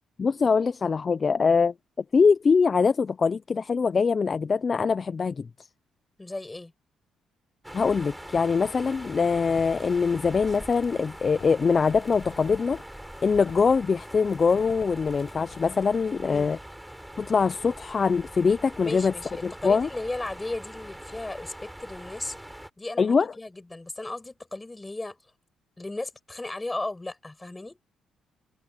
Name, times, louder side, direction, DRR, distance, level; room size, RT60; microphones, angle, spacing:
voice 1, 0.2-1.7 2.1-5.5 7.7-12.8 13.2-16.6 17.2-19.1 19.4-19.9 23.0-23.3, left 5 dB, 40° left, 0.5 m, -23 dB
voice 2, 6.2-6.7 16.2-16.5 18.8-22.4 22.8-25.2 25.8-27.8, left 2 dB, 15° left, 7.0 m, -35 dB
sound 1, 7.6-22.7, right 1 dB, 5° right, 4.4 m, -43 dB
sound 2, 8.6-15.9, left 11 dB, 80° left, 5.5 m, -50 dB
cardioid pair, 90°, 0 cm